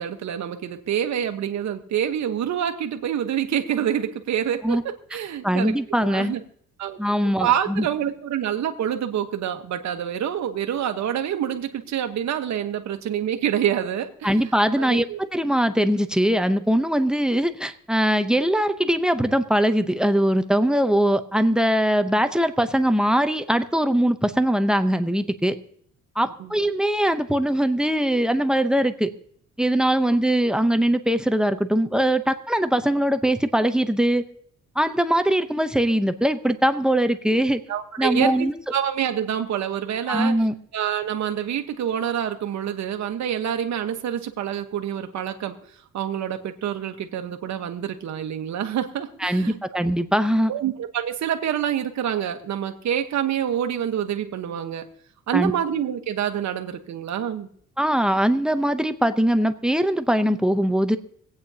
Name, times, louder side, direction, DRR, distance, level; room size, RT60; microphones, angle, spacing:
voice 1, 0.0-5.7 6.0-6.4 6.8-7.0 7.4-14.5 14.8-15.2 26.4-26.6 30.1-30.2 37.7-40.3 40.7-45.6 45.9-49.6 50.5-54.8 55.3-57.5, right 9 dB, 65° right, 6 dB, 1.2 m, -27 dB
voice 2, 5.4-6.3 7.0-7.9 14.2-25.6 26.2-29.1 29.6-34.2 34.8-37.6 38.0-38.5 40.1-40.5 49.2-50.5 55.3-55.5 57.8-61.0, right 1 dB, 5° right, 9 dB, 0.7 m, -21 dB
25.5 x 8.7 x 2.8 m, 0.65 s
cardioid pair, 90°, 30 cm